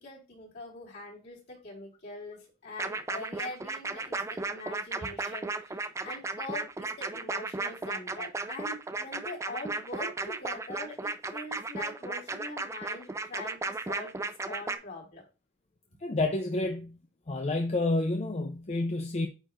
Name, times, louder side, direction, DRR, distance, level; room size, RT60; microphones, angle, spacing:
voice 1, 0.0-15.2, left 2 dB, 60° left, 3.8 m, -43 dB
sound 1, 2.8-14.8, right 3 dB, 15° right, 0.4 m, -35 dB
voice 2, 16.0-17.0 17.3-19.3, left 2 dB, 35° left, 0.6 m, -29 dB
8.8 x 4.6 x 2.5 m
head